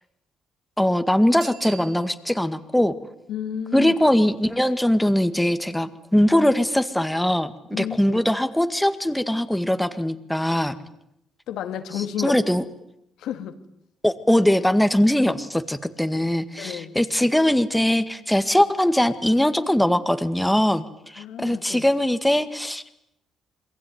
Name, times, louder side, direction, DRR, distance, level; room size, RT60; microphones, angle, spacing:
voice 1, 0.8-2.9 3.7-10.7 12.2-12.6 14.0-20.8 21.1-22.8, left 1 dB, 5° left, 1.9 m, -21 dB
Bicycle bell, 1.4-2.5 8.0-8.1, right 10 dB, 90° right, 2.7 m, -42 dB
voice 2, 3.3-3.9 7.7-8.3 11.5-12.4 13.2-13.6 16.6-17.0 21.2-21.8, left 9 dB, 85° left, 2.4 m, -31 dB
27.0 x 22.5 x 9.5 m
cardioid pair, 90°, 0 cm